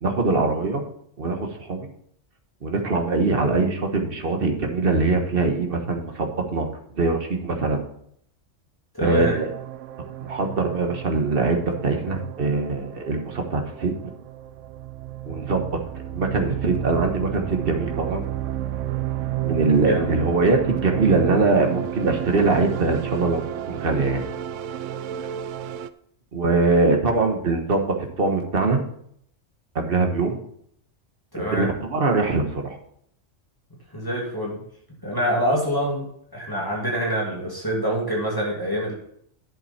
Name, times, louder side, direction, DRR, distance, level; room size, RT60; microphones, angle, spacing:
voice 1, 0.0-0.8 1.2-1.9 2.6-6.7 6.9-7.8 9.0-9.5 10.2-13.9 15.3-15.8 16.1-18.2 19.4-24.2 26.3-28.8 29.7-30.4 31.3-32.8, right 3 dB, 50° right, 4 dB, 1.5 m, -22 dB
voice 2, 8.9-9.4 19.7-20.1 31.3-31.7 33.9-34.6 35.0-36.1 36.3-38.9, equal, 15° left, -4 dB, 2.6 m, -25 dB
sound 1, 9.2-25.9, right 12 dB, 80° right, 0.9 m, -31 dB
10.5 x 7.8 x 4.3 m, 0.68 s
omnidirectional pair, 1.3 m